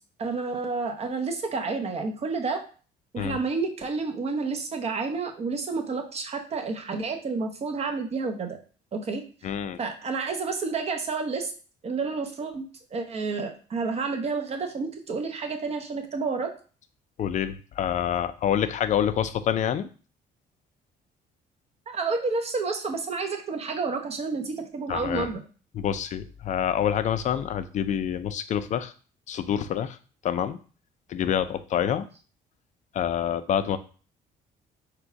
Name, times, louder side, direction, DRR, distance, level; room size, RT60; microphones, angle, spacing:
voice 1, 0.2-2.6 3.1-8.6 8.9-9.2 9.8-11.5 11.8-12.7 12.9-16.5 21.9-25.4, right 4 dB, 40° right, 4 dB, 0.8 m, -30 dB
voice 2, 9.4-9.8 17.2-19.9 24.9-25.3 25.7-28.9 29.3-30.0 30.2-30.6 31.1-32.1 32.9-33.8, left 9 dB, 45° left, 12 dB, 0.4 m, -27 dB
3.9 x 2.3 x 4.6 m, 0.38 s
cardioid pair, 110°, 17 cm